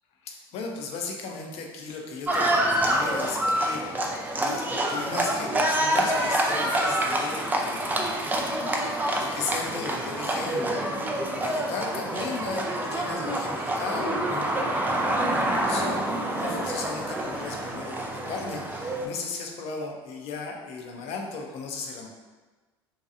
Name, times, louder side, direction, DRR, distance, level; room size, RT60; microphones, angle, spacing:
voice 1, 0.2-8.1 9.2-10.9 11.4-14.6 15.6-22.1, left 4 dB, 50° left, 1 dB, 0.5 m, -36 dB
Livestock farm animals working animals, 2.3-19.1, right 1 dB, 15° right, 0.3 m, -27 dB
2.7 x 2.3 x 2.5 m, 1.3 s
figure-of-eight pair, 70°, 13 cm